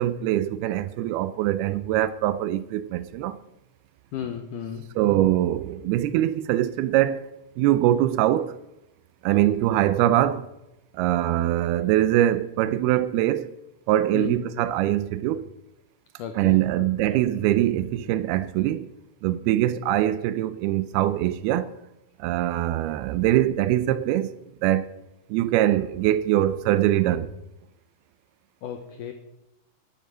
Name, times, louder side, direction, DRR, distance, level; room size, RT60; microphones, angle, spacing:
voice 1, 0.0-3.4 5.0-7.2 7.6-8.5 9.2-10.5 10.9-13.5 13.9-15.5 16.3-18.9 19.2-21.7 22.2-24.3 24.6-25.0 25.3-27.3, right 13 dB, 80° right, 2.4 m, -23 dB
voice 2, 4.1-4.9 14.1-14.4 16.2-16.9 28.6-29.1, left 8 dB, 85° left, 1.8 m, -34 dB
12.0 x 9.2 x 6.2 m
omnidirectional pair, 4.6 m